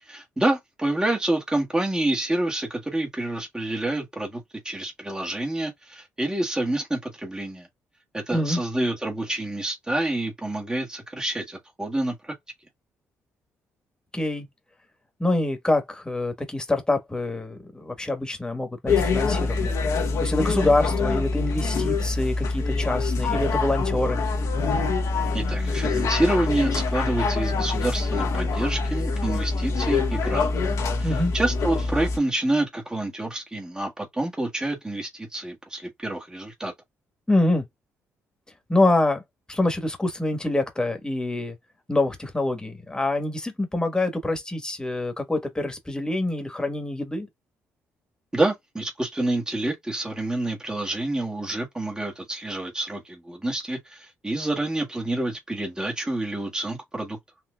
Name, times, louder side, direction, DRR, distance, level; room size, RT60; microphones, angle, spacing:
voice 1, 0.0-7.7 8.1-12.3 25.3-30.5 31.0-36.7 48.3-57.2, right 1 dB, 15° right, 1.5 m, -28 dB
voice 2, 14.1-14.5 15.2-19.8 20.2-24.2 31.0-31.3 37.3-37.6 38.7-39.2 39.5-41.5 41.9-47.3, left 2 dB, 15° left, 1.6 m, -25 dB
sound 1, 18.9-32.2, left 3 dB, 65° left, 1.3 m, -25 dB
4.4 x 2.6 x 2.4 m
supercardioid pair, 60°, 6 cm